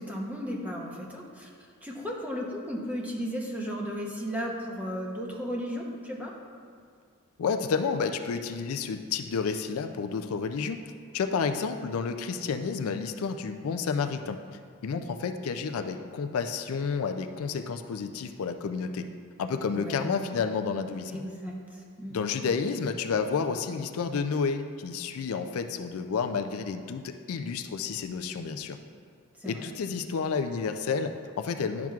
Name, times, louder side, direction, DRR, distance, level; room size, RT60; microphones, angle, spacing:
voice 1, 0.0-1.5 1.8-6.3 19.7-20.2 21.1-22.2 29.4-29.7, equal, 5° right, -2 dB, 0.8 m, -35 dB
voice 2, 7.4-10.8 11.1-14.4 14.8-19.1 19.4-21.2 22.1-28.8 29.5-31.9, left 5 dB, 75° left, 7 dB, 0.4 m, -30 dB
10.5 x 5.9 x 2.4 m, 2.2 s
head